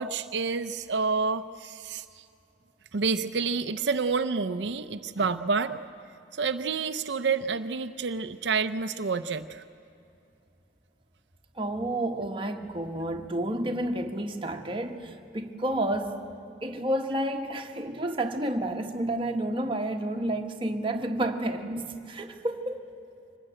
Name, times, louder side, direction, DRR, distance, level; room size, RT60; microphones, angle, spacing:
voice 1, 0.0-2.2 2.9-5.8 6.3-9.6, right 4 dB, 80° right, 0.6 m, -29 dB
voice 2, 11.5-16.2 16.6-22.8, right 1 dB, 30° right, 1.4 m, -30 dB
24.5 x 19.5 x 8.9 m
head